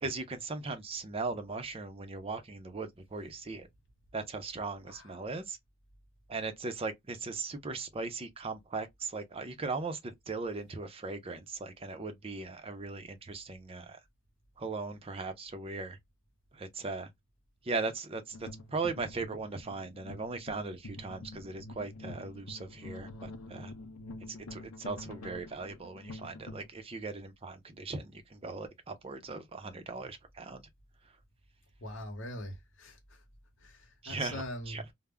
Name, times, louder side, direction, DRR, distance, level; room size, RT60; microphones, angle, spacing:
voice 1, 0.0-3.7 4.1-5.6 6.3-14.0 14.6-16.0 16.5-17.1 17.6-23.7 24.3-30.6 34.0-34.8, right 3 dB, 25° right, 0.5 m, -38 dB
sound 1, 18.3-26.7, left 2 dB, 90° left, 0.5 m, -47 dB
voice 2, 31.8-33.2 33.6-34.9, left 1 dB, 60° left, 0.9 m, -42 dB
2.1 x 2.0 x 3.4 m
head